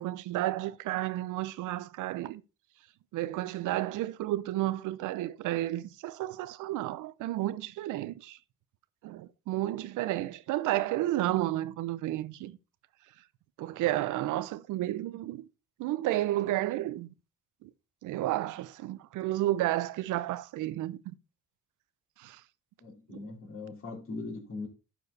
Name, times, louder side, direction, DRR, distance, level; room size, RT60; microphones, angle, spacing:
voice 1, 0.0-2.4 3.1-8.4 9.0-12.6 13.6-15.5 15.8-17.1 17.6-17.7 18.0-21.1 22.2-22.4, right 15 dB, 90° right, 0.7 m, -32 dB
voice 2, 22.8-24.7, left 3 dB, 45° left, 3.7 m, -40 dB
12.0 x 4.6 x 4.0 m
cardioid pair, 90°, 30 cm